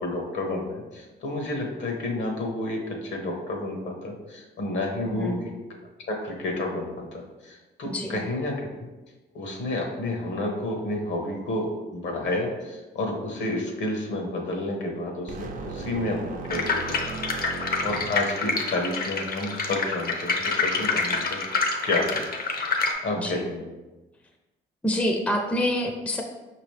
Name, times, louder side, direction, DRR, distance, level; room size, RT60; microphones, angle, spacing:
voice 1, 0.0-5.5 6.1-8.7 9.3-21.4 21.8-22.2 23.0-23.7, left 2 dB, 70° left, 1 dB, 1.1 m, -30 dB
voice 2, 5.1-5.4 7.8-8.2 23.2-23.5 24.8-26.2, equal, 5° left, 2 dB, 0.5 m, -27 dB
sound 1, 15.3-18.5, right 3 dB, 45° right, 0.5 m, -36 dB
sound 2, 16.5-22.9, left 4 dB, 50° left, 0.7 m, -27 dB
5.2 x 3.0 x 3.2 m, 1.1 s
cardioid pair, 90°, 20 cm